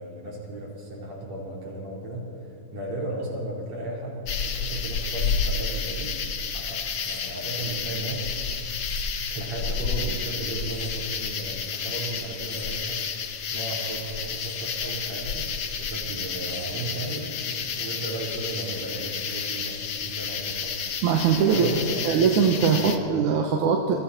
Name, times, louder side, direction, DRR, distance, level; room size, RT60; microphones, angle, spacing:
voice 1, 0.0-6.2 6.5-8.3 9.3-13.1 13.5-20.8 21.5-22.1 22.8-23.1, right 1 dB, 60° right, -3 dB, 5.3 m, -35 dB
sound 1, 4.2-23.0, left 6 dB, 55° left, 1.2 m, -31 dB
voice 2, 21.0-21.7 22.0-24.0, right 6 dB, 80° right, 2 dB, 2.7 m, -21 dB
29.0 x 23.5 x 4.4 m, 2.6 s
omnidirectional pair, 3.5 m